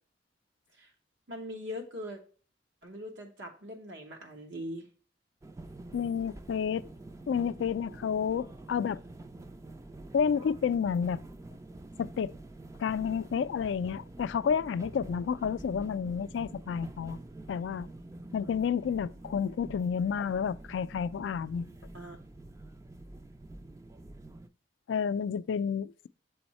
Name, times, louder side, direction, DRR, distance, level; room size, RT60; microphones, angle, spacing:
voice 1, 1.3-2.2 2.8-4.9 21.9-22.2, equal, 80° right, 1.1 m, -41 dB
sound 1, 5.4-24.5, right 2 dB, 15° right, 0.3 m, -47 dB
voice 2, 5.9-6.9 7.3-9.0 10.1-11.2 12.0-12.3 12.8-17.2 17.5-17.9 18.3-21.7 24.9-26.1, left 7 dB, 80° left, 0.3 m, -30 dB
7.0 x 3.5 x 4.2 m
head